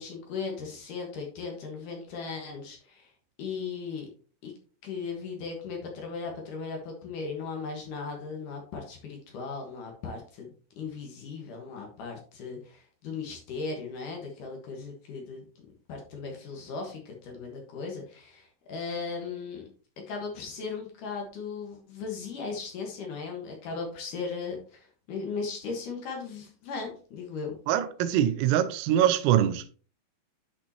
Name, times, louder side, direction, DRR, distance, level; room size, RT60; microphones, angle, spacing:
voice 1, 0.0-3.1 3.4-4.1 4.4-4.5 4.8-10.5 10.8-15.5 15.9-19.7 20.1-27.6, left 4 dB, 65° left, 2.1 m, -37 dB
voice 2, 27.7-29.7, right 11 dB, 90° right, 3.3 m, -24 dB
10.5 x 5.3 x 2.9 m
omnidirectional pair, 5.8 m